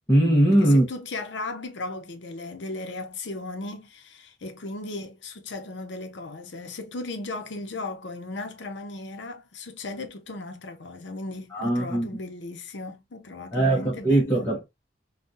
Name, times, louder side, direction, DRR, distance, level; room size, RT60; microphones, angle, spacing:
voice 1, 0.1-0.8 11.5-12.1 13.5-14.6, right 1 dB, 15° left, 0.8 m, -20 dB
voice 2, 0.6-14.5, left 2 dB, 75° left, 0.7 m, -36 dB
3.7 x 2.3 x 2.5 m
head